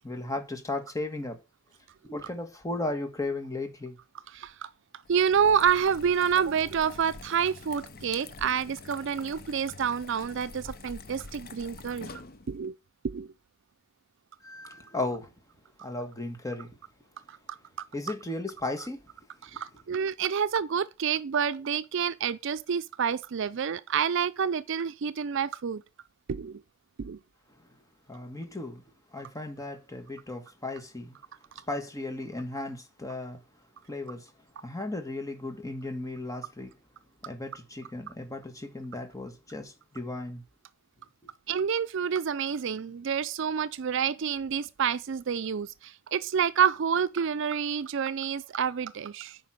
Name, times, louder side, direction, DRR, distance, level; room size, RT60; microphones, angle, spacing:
voice 1, 0.0-1.4 2.0-4.0 14.4-15.3 15.8-16.8 17.9-19.0 19.5-19.6 28.1-28.8 29.1-31.2 31.7-33.4 33.9-34.3 34.6-36.7 37.2-40.4 41.2-41.3, left 2 dB, 15° left, 1.5 m, -35 dB
voice 2, 4.3-4.7 5.1-12.2 12.5-12.7 13.0-13.3 17.3-17.9 19.4-25.8 26.3-26.6 27.0-27.2 41.5-49.4, right 7 dB, 65° right, 0.5 m, -28 dB
sound 1, 5.0-12.7, left 3 dB, 50° left, 0.8 m, -46 dB
9.0 x 5.1 x 6.2 m
head